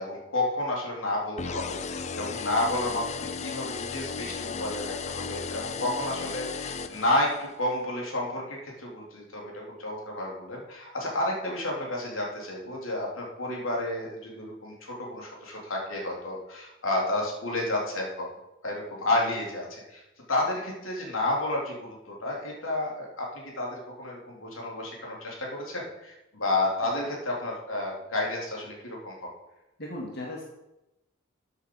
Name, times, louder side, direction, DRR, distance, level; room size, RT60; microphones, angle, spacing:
voice 1, 0.0-18.3 18.6-20.0 20.3-29.3, left 1 dB, 85° left, -2 dB, 3.3 m, -31 dB
sound 1, 1.4-7.6, left 5 dB, 35° left, 0.5 m, -35 dB
voice 2, 29.8-30.4, left 1 dB, 55° left, -2 dB, 2.0 m, -36 dB
13.5 x 7.9 x 4.8 m, 0.93 s
head